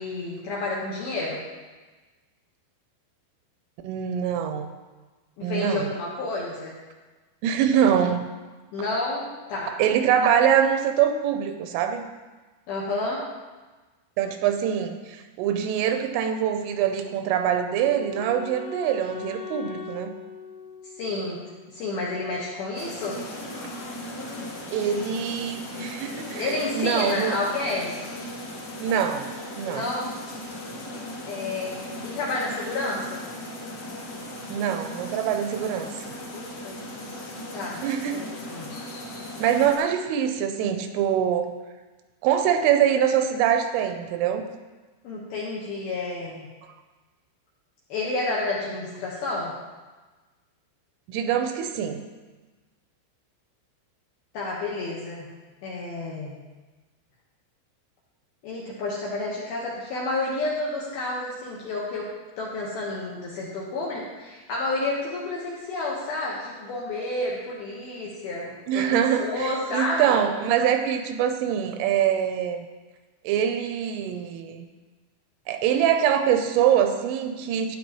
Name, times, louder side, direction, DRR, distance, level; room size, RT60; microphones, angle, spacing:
voice 1, 0.0-1.4 5.4-6.8 8.7-9.7 12.7-13.2 21.0-23.2 26.4-28.1 29.6-30.2 31.3-33.2 36.3-36.8 37.5-37.8 38.1-38.7 45.0-46.5 47.9-49.5 54.3-55.3 55.6-56.3 58.4-62.1 62.4-70.1, left 2 dB, 70° left, -5 dB, 2.4 m, -30 dB
voice 2, 3.8-4.7 5.4-5.9 7.4-8.3 9.8-12.1 14.2-20.2 24.7-27.4 28.8-29.3 29.6-29.8 34.5-36.1 37.8-38.2 39.4-41.5 42.2-44.5 51.1-52.0 68.7-72.7 73.2-74.7 75.5-77.8, right 9 dB, 85° right, 6 dB, 3.1 m, -24 dB
Wind instrument woodwind instrument, 17.0-22.0, left 6 dB, 85° left, 3.2 m, -41 dB
sound 1, 22.7-39.8, left 1 dB, 50° left, 2.5 m, -37 dB
12.5 x 9.6 x 3.0 m, 1.2 s
omnidirectional pair, 5.9 m